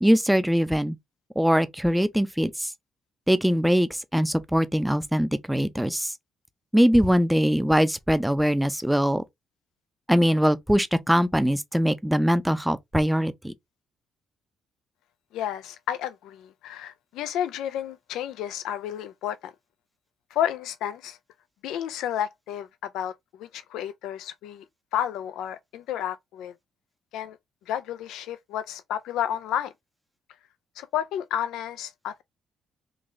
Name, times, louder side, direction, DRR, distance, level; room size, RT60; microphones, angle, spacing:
voice 1, 0.0-1.0 1.4-2.7 3.3-6.1 6.7-9.2 10.1-13.5, equal, 5° right, 0.5 m, -22 dB
voice 2, 15.3-19.5 20.3-21.2 21.6-23.1 23.4-24.6 24.9-26.5 27.1-27.4 27.7-29.7 30.8-32.2, left 10 dB, 90° left, 0.3 m, -31 dB
3.8 x 2.5 x 3.1 m
cardioid pair, 90°, 0 cm